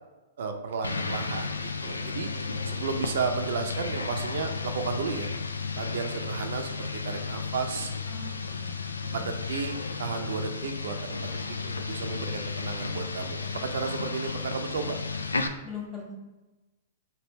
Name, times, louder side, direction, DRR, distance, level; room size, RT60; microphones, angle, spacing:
voice 1, 0.4-2.3 2.7-5.3 5.8-7.9 9.1-9.7 10.0-11.2 11.6-15.0, right 5 dB, 65° right, 5 dB, 0.5 m, -33 dB
sound 1, 0.8-15.5, left 4 dB, 90° left, 0.3 m, -33 dB
voice 2, 8.1-9.4 15.6-16.1, left 5 dB, 10° left, -4 dB, 1.4 m, -42 dB
3.3 x 2.7 x 4.2 m, 1.1 s
hypercardioid pair, 110°, 0 cm